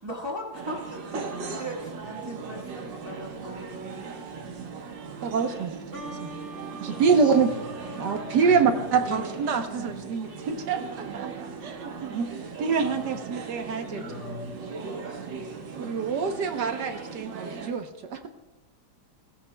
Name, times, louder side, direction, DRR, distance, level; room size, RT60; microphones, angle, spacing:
voice 1, 0.0-4.2, equal, 15° right, -2 dB, 1.4 m, -38 dB
sound 1, 0.5-17.7, right 5 dB, 85° right, 1.9 m, -38 dB
voice 2, 5.2-5.7 6.2-6.3 6.8-7.5 8.0-12.3 12.6-14.0 15.8-18.3, right 5 dB, 70° right, 6 dB, 1.5 m, -26 dB
sound 2, 5.9-11.4, right 1 dB, 40° right, 2.1 m, -44 dB
voice 3, 6.9-8.0 8.4-8.6 8.9-9.1 13.9-15.3, left 2 dB, 65° left, -3 dB, 5.9 m, -41 dB
18.0 x 15.5 x 2.3 m, 1.0 s
omnidirectional pair, 1.9 m